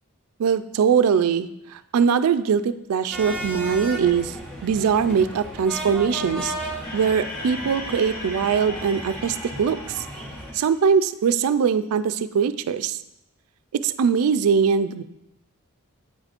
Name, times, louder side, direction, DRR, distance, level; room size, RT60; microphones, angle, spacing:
voice 1, 0.4-4.4 4.6-6.5 6.9-10.0 10.5-13.0 13.7-15.0, right 6 dB, 75° right, 13 dB, 0.3 m, -22 dB
sound 1, 3.1-10.5, equal, 5° left, 0.9 m, -35 dB
sound 2, 6.8-11.2, left 1 dB, 40° left, 0.8 m, -38 dB
8.6 x 5.0 x 2.4 m, 0.85 s
head